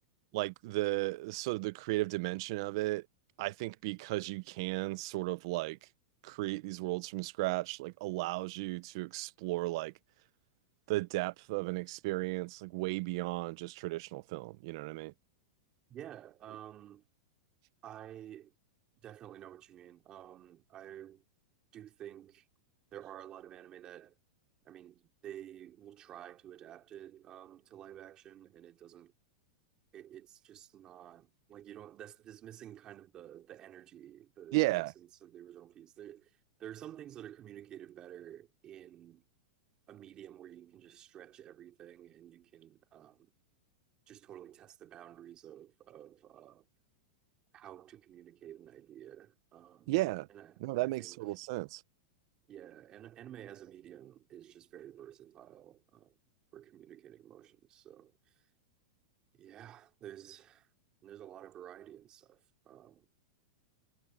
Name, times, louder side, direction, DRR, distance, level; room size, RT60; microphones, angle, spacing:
voice 1, 0.3-3.1 3.4-5.8 6.2-9.9 10.9-15.1 34.5-34.9 49.9-50.3 50.6-51.8, right 20 dB, 50° right, 0.8 m, -34 dB
voice 2, 15.9-17.0 17.8-18.5 19.0-21.2 21.7-22.5 22.9-24.1 24.6-29.1 29.9-36.3 36.6-39.2 39.9-43.3 44.1-46.6 47.5-49.9 50.3-51.2 52.5-56.1 56.5-58.1 59.3-60.7 61.0-63.1, right 11 dB, 25° right, 2.9 m, -51 dB
supercardioid pair, 155°, 3 cm